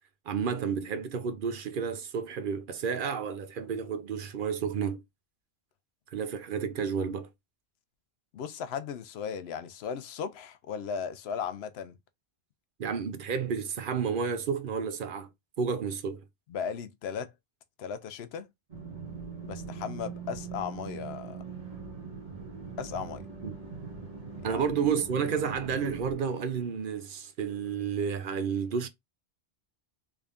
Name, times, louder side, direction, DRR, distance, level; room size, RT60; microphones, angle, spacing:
voice 1, 0.3-5.0 6.1-7.3 12.8-15.3 15.6-16.2 23.4-23.5 24.4-28.9, right 6 dB, 60° right, 0.7 m, -31 dB
voice 2, 8.3-12.0 16.5-17.3 17.8-18.5 19.4-21.4 22.8-23.2 24.4-24.7, left 7 dB, 70° left, 0.8 m, -36 dB
sound 1, 18.7-26.1, right 5 dB, 40° right, 1.6 m, -41 dB
3.6 x 3.4 x 2.4 m
omnidirectional pair, 1.1 m